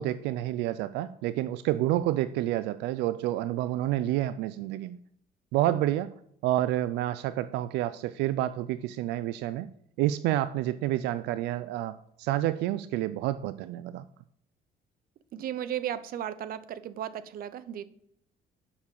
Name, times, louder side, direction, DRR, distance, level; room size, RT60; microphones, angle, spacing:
voice 1, 0.0-5.0 5.5-6.1 6.4-9.7 10.0-14.0, right 14 dB, 90° right, 14 dB, 0.4 m, -29 dB
voice 2, 15.3-17.8, right 10 dB, 60° right, 14 dB, 0.7 m, -35 dB
7.1 x 5.9 x 7.0 m, 0.72 s
cardioid pair, 110°, 17 cm